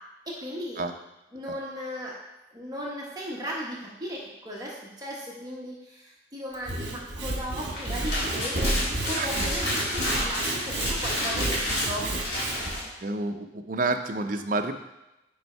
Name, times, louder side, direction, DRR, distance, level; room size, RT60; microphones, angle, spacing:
voice 1, 0.3-0.8 1.3-2.2 2.5-12.1, equal, 20° right, -4 dB, 1.1 m, -36 dB
Sawing / Wood, 6.5-12.7, right 2 dB, 65° right, 1.2 m, -31 dB
sound 1, 7.5-12.9, left 1 dB, 65° left, 1.8 m, -31 dB
voice 2, 13.0-14.7, right 3 dB, 45° right, 6 dB, 0.5 m, -29 dB
5.5 x 5.4 x 4.4 m, 0.96 s
head